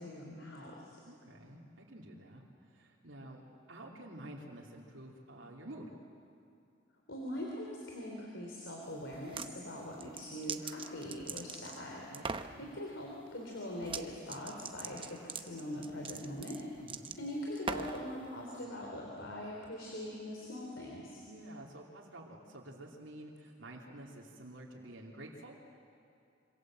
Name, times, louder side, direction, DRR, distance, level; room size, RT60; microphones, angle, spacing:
voice 1, 0.0-1.0 7.1-12.3 12.6-16.6 17.2-21.2, left 1 dB, 75° left, -1 dB, 3.6 m, -42 dB
voice 2, 1.0-3.4 3.7-5.9 12.1-12.7 16.8-17.2 21.3-25.6, right 1 dB, 85° right, -4 dB, 3.0 m, -50 dB
sound 1, 9.1-9.5 10.0-11.8 12.1-12.5 13.8-14.0 14.3-18.0, right 5 dB, 25° right, 0.9 m, -41 dB
26.0 x 26.0 x 7.7 m, 2.5 s
head